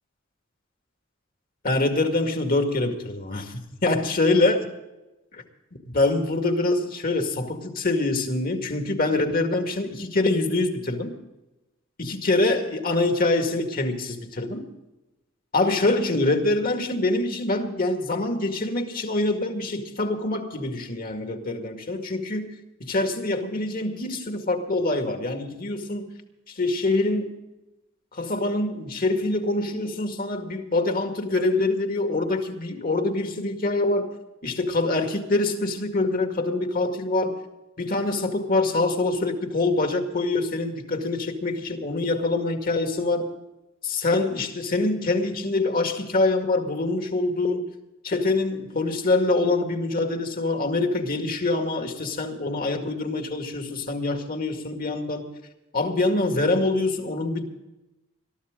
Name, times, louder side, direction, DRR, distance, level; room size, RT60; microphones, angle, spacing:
voice 1, 1.6-4.7 5.3-5.4 5.9-11.1 12.0-14.7 15.5-22.5 22.8-26.1 26.5-27.3 28.1-34.1 34.4-37.3 37.8-43.3 43.8-47.7 48.0-55.3 55.7-57.4, left 2 dB, 45° left, 5 dB, 2.1 m, -25 dB
21.5 x 13.5 x 3.8 m, 0.99 s
head